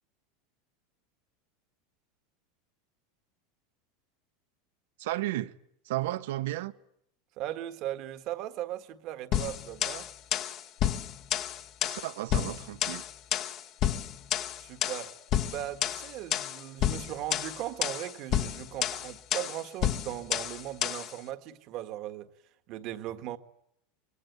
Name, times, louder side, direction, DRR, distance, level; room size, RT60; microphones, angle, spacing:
voice 1, 5.0-5.5 5.8-6.7 11.8-13.0, right 16 dB, 70° right, 1.3 m, -33 dB
voice 2, 7.4-10.1 14.6-15.1 15.5-22.3 22.7-23.4, right 13 dB, 35° right, 1.6 m, -38 dB
sound 1, 9.3-21.1, left 10 dB, 35° left, 1.1 m, -31 dB
25.5 x 23.0 x 9.4 m
supercardioid pair, 175°, 0 cm